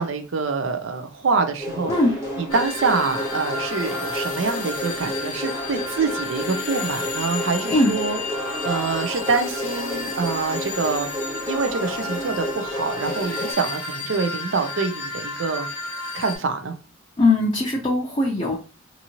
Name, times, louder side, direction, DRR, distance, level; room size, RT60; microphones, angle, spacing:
voice 1, 0.0-1.9 2.4-8.2 8.6-11.1 11.5-15.7 16.1-16.7, right 4 dB, 65° right, 0.5 m, -25 dB
sound 1, 1.6-13.5, left 1 dB, 15° right, 0.8 m, -31 dB
sound 2, 2.5-16.4, left 3 dB, 90° left, 0.6 m, -32 dB
voice 2, 17.2-18.6, left 2 dB, 25° left, 0.4 m, -20 dB
2.6 x 2.6 x 2.8 m
head